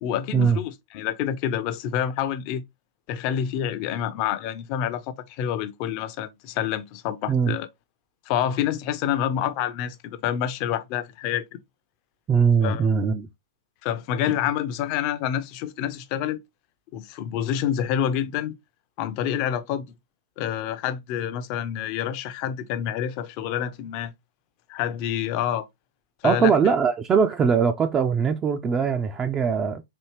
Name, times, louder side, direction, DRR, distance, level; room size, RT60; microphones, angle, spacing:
voice 1, 0.0-2.6 3.1-7.7 8.3-11.4 12.6-12.9 13.8-16.4 16.9-18.5 19.0-19.9 20.4-24.1 24.7-25.7 26.2-26.5, left 10 dB, 40° left, 0.6 m, -27 dB
voice 2, 12.3-13.3 26.2-29.8, right 6 dB, 20° right, 0.4 m, -21 dB
4.3 x 2.8 x 3.1 m
hypercardioid pair, 110°, 2 cm